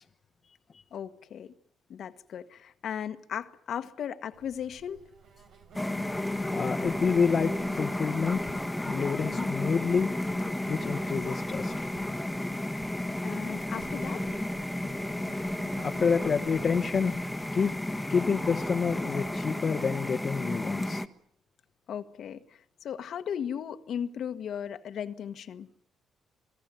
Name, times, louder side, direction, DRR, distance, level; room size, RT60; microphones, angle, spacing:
voice 1, 0.9-1.5 1.9-5.0 9.2-9.5 13.2-14.4 21.9-25.7, left 8 dB, 65° left, 1.5 m, -37 dB
Insect, 4.3-19.5, right 5 dB, 75° right, 5.9 m, -52 dB
sound 1, 5.7-21.1, left 1 dB, 5° left, 1.5 m, -33 dB
voice 2, 6.5-8.5 8.9-10.1 10.7-11.7 16.0-17.1 17.5-17.7 18.1-21.0, left 5 dB, 45° left, 1.2 m, -28 dB
28.0 x 18.5 x 9.2 m
cardioid pair, 90°, 0 cm